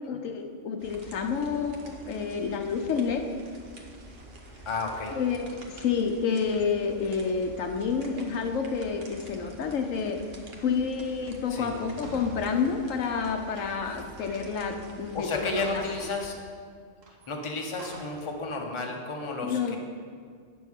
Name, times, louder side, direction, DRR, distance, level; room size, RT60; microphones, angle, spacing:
voice 1, 0.1-3.2 5.1-10.2 10.6-15.8 19.4-19.8, left 6 dB, 75° left, 4 dB, 1.1 m, -29 dB
sound 1, 0.8-16.3, right 2 dB, 50° right, 1.2 m, -48 dB
voice 2, 4.7-5.2 11.5-11.8 15.1-16.3 17.3-19.8, left 3 dB, 25° left, 1 dB, 0.9 m, -32 dB
sound 2, 12.0-14.8 15.0-15.1 15.3-16.4 17.0-18.4, right 3 dB, 75° right, 1.6 m, -48 dB
9.2 x 5.4 x 6.5 m, 2.1 s
omnidirectional pair, 1.3 m